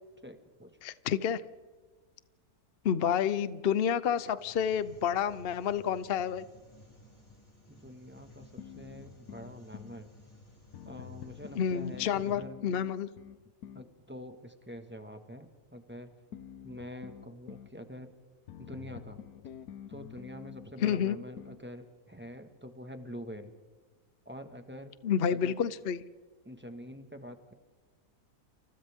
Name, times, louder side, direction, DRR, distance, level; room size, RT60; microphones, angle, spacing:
voice 1, 0.2-0.8 7.7-10.1 10.8-12.6 13.7-16.1 16.6-18.1 18.6-19.2 19.9-23.5 24.2-24.9 25.3-25.6 26.4-27.5, equal, 5° right, 6 dB, 1.6 m, -46 dB
voice 2, 0.8-1.4 2.8-6.4 11.6-13.1 20.8-21.2 25.0-26.0, left 8 dB, 50° left, 14 dB, 0.8 m, -29 dB
sound 1, 4.4-12.4, left 1 dB, 15° left, 7.6 m, -56 dB
sound 2, 8.6-10.0 10.7-13.9 16.3-17.7 18.5-21.7, left 9 dB, 75° left, 1.3 m, -47 dB
29.5 x 28.5 x 3.7 m, 1.4 s
omnidirectional pair, 1.6 m